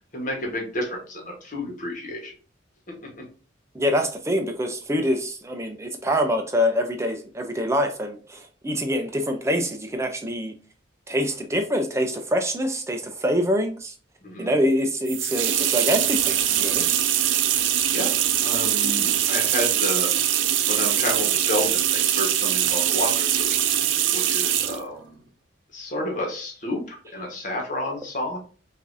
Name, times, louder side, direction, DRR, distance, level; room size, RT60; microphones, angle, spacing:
voice 1, 0.1-2.3 14.2-14.5 17.9-18.1 18.4-20.1 20.7-23.6 24.1-25.2 25.7-28.4, left 1 dB, 40° left, 0 dB, 1.3 m, -30 dB
voice 2, 3.7-10.5 11.1-13.9 14.4-16.9, equal, 15° right, 4 dB, 0.6 m, -25 dB
sound 1, 15.1-24.8, right 11 dB, 75° right, 0.4 m, -22 dB
5.0 x 2.7 x 2.6 m, 0.38 s
head